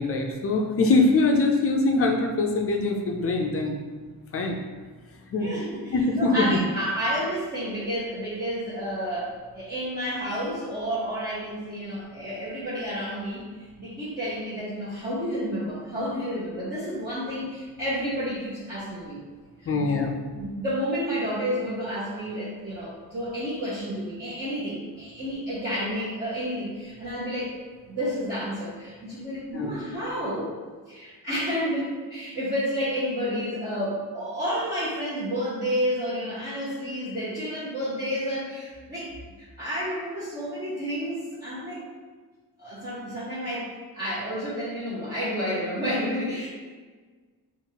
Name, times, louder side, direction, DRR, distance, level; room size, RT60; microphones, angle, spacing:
voice 1, 0.0-3.7 4.3-4.6 5.3-5.5 5.9-6.6 19.7-20.1 29.5-29.7, left 3 dB, 40° left, 2 dB, 0.4 m, -23 dB
voice 2, 5.4-13.4 13.8-19.2 19.7-19.9 20.3-27.5 27.9-30.5 30.9-41.8 42.6-43.7 43.9-46.5, equal, 25° right, -11 dB, 0.9 m, -30 dB
5.4 x 2.5 x 2.8 m, 1.4 s
wide cardioid pair, 165°, 38 cm